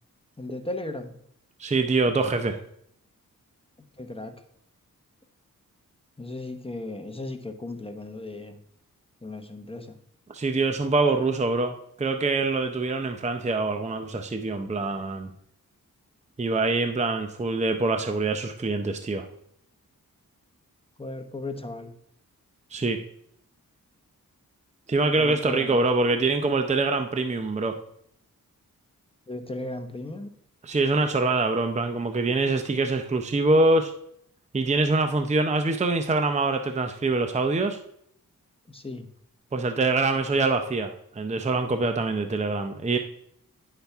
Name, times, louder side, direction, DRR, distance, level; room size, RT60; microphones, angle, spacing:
voice 1, 0.4-1.2 4.0-4.3 6.2-8.6 9.2-10.0 14.1-14.2 21.0-21.9 25.2-25.8 29.3-30.3 38.7-39.1, left 2 dB, 15° left, 7 dB, 0.9 m, -36 dB
voice 2, 1.6-2.6 10.3-15.3 16.4-19.2 22.7-23.0 24.9-27.8 30.6-33.9 34.5-37.8 39.5-43.0, right 3 dB, 20° right, 6 dB, 0.6 m, -24 dB
9.3 x 5.8 x 3.5 m, 0.70 s
cardioid pair, 65°, 34 cm